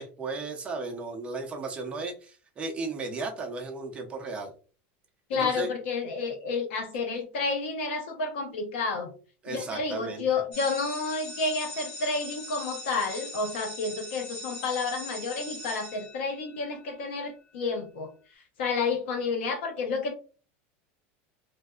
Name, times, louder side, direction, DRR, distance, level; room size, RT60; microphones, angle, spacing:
voice 1, 0.0-4.5 5.3-5.7 9.4-10.2, right 3 dB, 20° right, 0.6 m, -35 dB
voice 2, 5.3-9.1 9.5-18.1 18.6-20.1, left 4 dB, 80° left, 1.0 m, -30 dB
sound 1, 10.5-16.7, left 2 dB, 20° left, 1.4 m, -41 dB
3.3 x 2.6 x 2.3 m
supercardioid pair, 160°, 6 cm